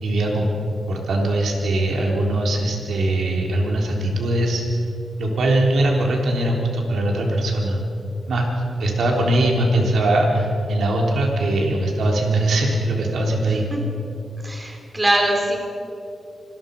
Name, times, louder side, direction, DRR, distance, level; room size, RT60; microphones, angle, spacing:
voice 1, 0.0-0.5 0.9-4.6 5.2-7.8 8.3-8.5 8.8-13.7, right 1 dB, 85° right, 0 dB, 3.5 m, -21 dB
voice 2, 14.4-15.6, right 1 dB, 20° right, 1 dB, 4.0 m, -21 dB
26.0 x 20.0 x 5.4 m, 2.7 s
cardioid pair, 85°, 0 cm